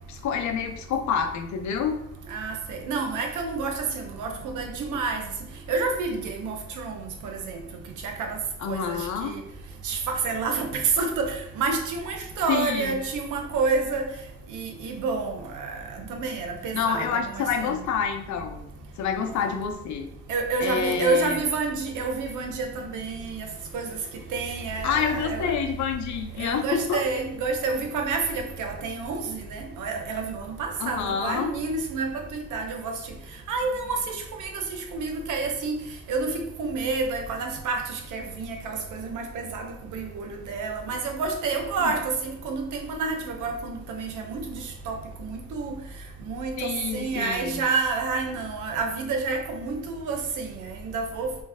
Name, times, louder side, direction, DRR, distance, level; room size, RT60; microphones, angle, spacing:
voice 1, 0.1-2.0 8.6-9.3 12.5-13.0 16.7-18.7 19.0-20.1 20.6-21.4 24.8-27.0 30.8-31.5 41.8-41.9 46.6-47.6, left 7 dB, 70° left, 6 dB, 0.6 m, -28 dB
voice 2, 2.3-5.2 5.7-7.6 8.0-8.4 8.7-9.4 9.8-14.1 14.5-17.8 20.3-23.5 23.7-23.9 24.3-25.5 26.4-32.9 33.5-35.8 36.1-45.7 46.2-51.3, right 4 dB, 80° right, 4 dB, 0.8 m, -29 dB
3.3 x 3.2 x 3.4 m, 0.81 s
cardioid pair, 90°, 30 cm